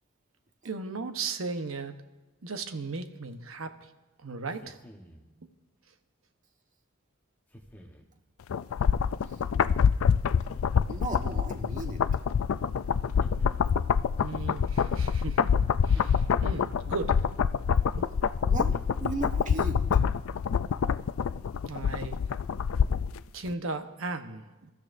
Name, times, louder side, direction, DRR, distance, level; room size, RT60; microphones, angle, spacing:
voice 1, 0.6-1.9 2.4-3.8 4.2-4.8 14.2-17.2 17.9-18.1 21.6-22.2 23.3-24.7, right 3 dB, 85° right, 7 dB, 1.1 m, -36 dB
sound 1, 4.5-5.3 7.5-8.1 10.3-11.1 13.2-14.1 15.9-16.9 18.7-19.5, left 1 dB, 10° left, 1.2 m, -51 dB
sound 2, 8.5-23.2 23.5-23.6, left 6 dB, 85° left, 0.4 m, -26 dB
voice 2, 10.9-12.0 16.3-16.5 18.5-18.7 19.0-20.0, right 2 dB, 40° right, 3 dB, 1.4 m, -36 dB
26.0 x 13.5 x 2.6 m, 1.1 s
head